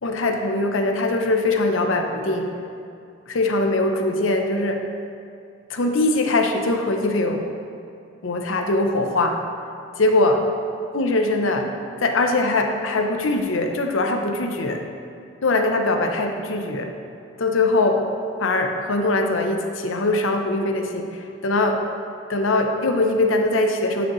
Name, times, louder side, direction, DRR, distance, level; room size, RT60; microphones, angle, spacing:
voice 1, 0.0-2.5 3.3-4.8 5.7-7.4 8.2-9.4 10.0-10.4 10.9-11.7 12.0-14.8 15.4-16.9 17.4-18.0 18.4-21.8 22.3-24.1, left 2 dB, 80° left, 4 dB, 0.7 m, -21 dB
11.0 x 5.1 x 3.1 m, 2.6 s
head